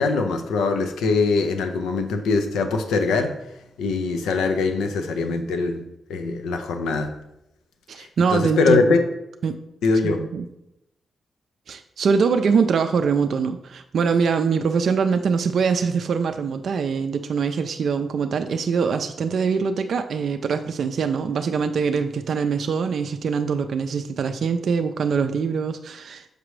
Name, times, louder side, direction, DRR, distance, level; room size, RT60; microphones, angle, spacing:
voice 1, 0.0-3.4 3.8-7.1 7.9-9.0 9.8-10.2, left 4 dB, 90° left, 0.5 m, -22 dB
voice 2, 7.9-9.0 9.4-9.5 10.0-10.5 11.7-26.3, right 5 dB, 70° right, 0.3 m, -23 dB
6.6 x 5.0 x 3.1 m
supercardioid pair, 50°, 0 cm